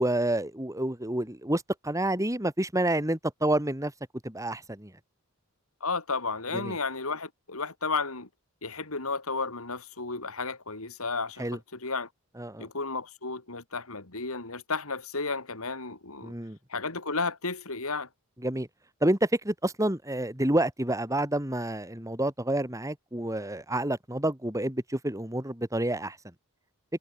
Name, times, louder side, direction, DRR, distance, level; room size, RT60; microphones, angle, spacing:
voice 1, 0.0-3.9 4.2-4.9 6.5-6.8 11.4-11.6 12.4-12.7 16.2-16.6 18.4-18.7 19.0-26.2, right 1 dB, 15° right, 3.6 m, -28 dB
voice 2, 5.8-8.3 8.6-12.1 12.6-16.3 16.7-18.1, left 4 dB, 70° left, 3.8 m, -33 dB
head